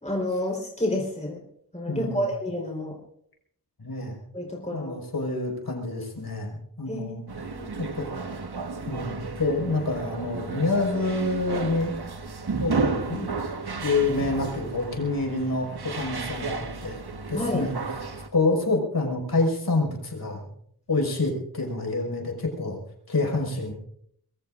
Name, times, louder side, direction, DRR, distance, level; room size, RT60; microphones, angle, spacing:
voice 1, 0.0-1.4 1.7-2.9 4.3-4.9 6.9-7.8 13.2-13.3 17.3-17.6, left 1 dB, 20° left, -2 dB, 4.0 m, -30 dB
voice 2, 1.9-2.2 3.8-4.2 4.7-7.2 7.8-8.1 8.9-12.0 12.6-13.2 13.8-17.0 17.3-17.8 18.3-20.5 20.9-22.8 23.1-23.7, left 2 dB, 70° left, 0 dB, 5.2 m, -27 dB
sound 1, 7.3-18.3, right 4 dB, 85° right, 1.5 m, -33 dB
24.5 x 22.0 x 2.5 m, 0.69 s
wide cardioid pair, 75°, 38 cm